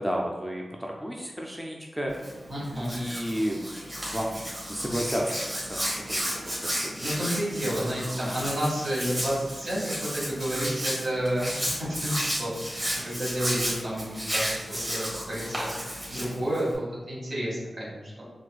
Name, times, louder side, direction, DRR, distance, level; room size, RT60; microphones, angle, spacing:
voice 1, 0.0-2.1 2.7-3.6 4.1-4.4 4.7-5.3 5.6-6.9, equal, 5° right, -1 dB, 0.3 m, -32 dB
Hands, 2.1-16.8, equal, 30° right, 1.4 m, -33 dB
voice 2, 2.5-2.9 6.6-18.2, equal, 65° right, -7 dB, 1.4 m, -31 dB
4.0 x 2.5 x 2.2 m, 1.2 s
wide cardioid pair, 85°, 0 cm